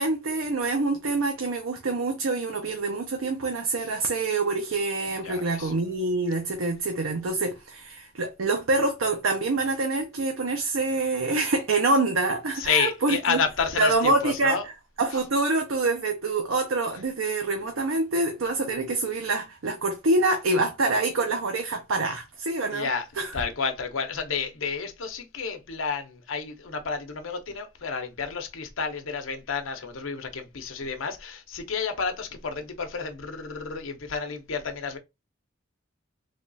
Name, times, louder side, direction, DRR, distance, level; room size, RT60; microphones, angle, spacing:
voice 1, 0.0-13.4 13.8-14.6 15.0-22.9 23.2-23.3, right 3 dB, 85° right, 0.6 m, -26 dB
voice 2, 5.2-5.7 12.5-14.7 22.7-35.0, left 5 dB, 75° left, 0.8 m, -30 dB
3.5 x 2.3 x 3.9 m
head